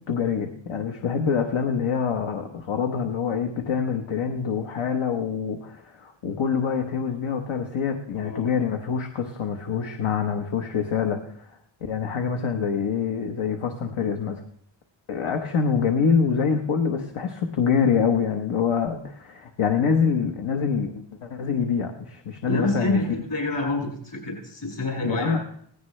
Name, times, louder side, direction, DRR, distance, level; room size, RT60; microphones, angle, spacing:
voice 1, 0.1-11.5 11.8-14.4 15.1-23.0 25.0-25.4, left 6 dB, 75° left, 3 dB, 1.1 m, -25 dB
voice 2, 22.5-25.4, left 2 dB, 60° left, -2 dB, 7.4 m, -27 dB
18.0 x 16.5 x 3.2 m, 0.65 s
wide cardioid pair, 110°, 48 cm